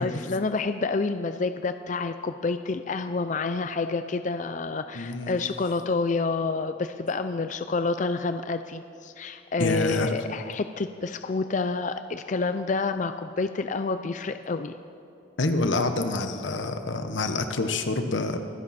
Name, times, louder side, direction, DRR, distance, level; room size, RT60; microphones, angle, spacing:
voice 1, 0.0-14.7, left 3 dB, 40° left, 9 dB, 0.5 m, -28 dB
voice 2, 4.9-5.4 9.6-10.1 15.4-18.4, left 2 dB, 90° left, 7 dB, 1.2 m, -27 dB
25.0 x 10.5 x 4.3 m, 2.6 s
head